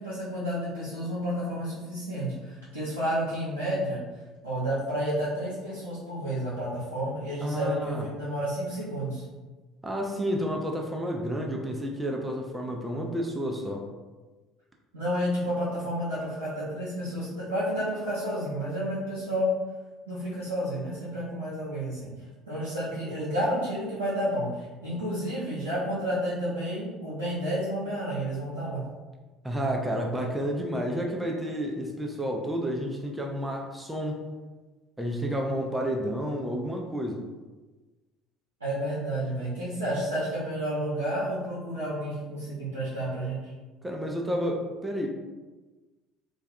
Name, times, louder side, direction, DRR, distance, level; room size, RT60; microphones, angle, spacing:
voice 1, 0.0-4.0 4.4-9.2 14.9-19.5 20.1-22.1 22.5-28.8 38.6-43.5, equal, 90° right, -11 dB, 0.6 m, -31 dB
voice 2, 7.4-8.1 9.8-13.9 29.4-34.2 35.0-37.2 43.8-45.1, equal, 10° right, 1 dB, 0.4 m, -30 dB
2.3 x 2.2 x 2.6 m, 1.2 s
figure-of-eight pair, 60°, 0 cm